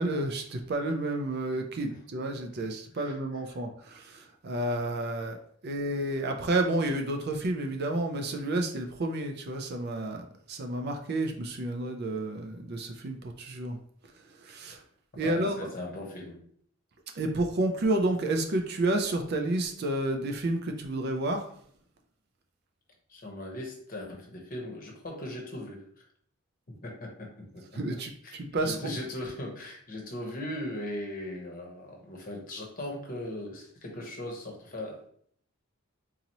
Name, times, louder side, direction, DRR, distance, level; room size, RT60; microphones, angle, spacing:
voice 1, 0.0-5.4 5.6-13.8 14.4-14.8 15.2-15.7 17.2-21.5 27.7-28.9, right 2 dB, 50° right, 4 dB, 0.5 m, -30 dB
voice 2, 15.2-16.4 23.1-26.1 26.8-27.6 28.2-28.4 28.6-35.1, left 1 dB, 40° left, 1 dB, 0.8 m, -39 dB
3.9 x 2.8 x 2.9 m, 0.63 s
head